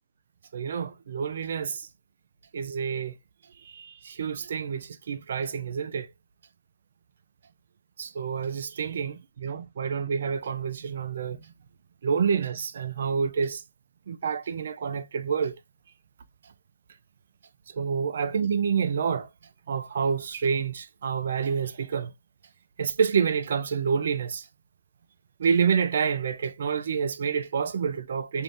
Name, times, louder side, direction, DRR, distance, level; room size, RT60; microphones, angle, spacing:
voice 1, 0.5-1.9 2.5-3.1 3.7-6.1 8.0-11.4 12.0-13.6 14.1-15.5 17.7-19.3 19.7-22.1 22.8-24.5 25.4-28.4, right 6 dB, 50° right, 0.4 m, -28 dB
2.6 x 2.5 x 3.4 m
hypercardioid pair, 155°, 0 cm